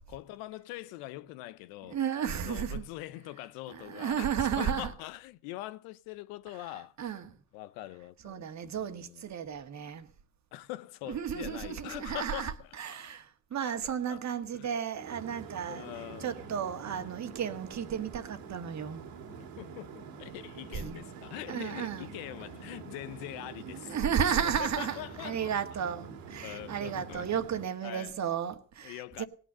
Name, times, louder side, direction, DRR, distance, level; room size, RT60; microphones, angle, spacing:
voice 1, 0.0-2.0 2.4-7.0 7.5-9.2 10.5-12.7 13.8-14.2 14.6-14.7 15.7-16.5 19.6-25.5 26.4-27.3 27.8-28.1 28.8-29.2, left 16 dB, 85° left, 0.8 m, -43 dB
voice 2, 1.9-2.8 3.7-4.9 7.0-7.4 8.2-10.1 11.1-15.9 16.2-19.0 20.7-21.0 21.5-22.1 23.7-29.2, right 8 dB, 50° right, 1.7 m, -33 dB
sound 1, 14.9-27.6, right 5 dB, 80° right, 2.4 m, -46 dB
17.0 x 9.1 x 6.8 m
supercardioid pair, 75°, 35 cm